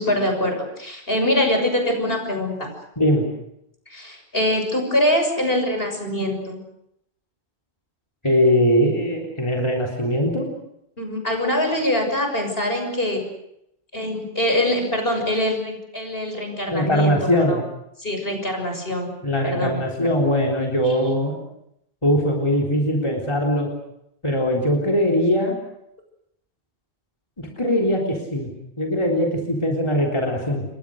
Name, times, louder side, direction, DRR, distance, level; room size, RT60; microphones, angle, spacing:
voice 1, 0.0-2.7 3.9-6.6 11.0-13.2 13.9-17.2 17.5-17.6 18.0-19.1 19.4-20.1 20.8-21.0, left 1 dB, 55° left, 4 dB, 6.9 m, -24 dB
voice 2, 8.2-10.5 16.7-17.6 19.2-21.4 22.0-23.7 24.2-25.6 27.4-28.5 28.8-30.6, equal, 25° left, 0 dB, 3.9 m, -21 dB
29.0 x 23.0 x 6.5 m, 0.79 s
omnidirectional pair, 1.1 m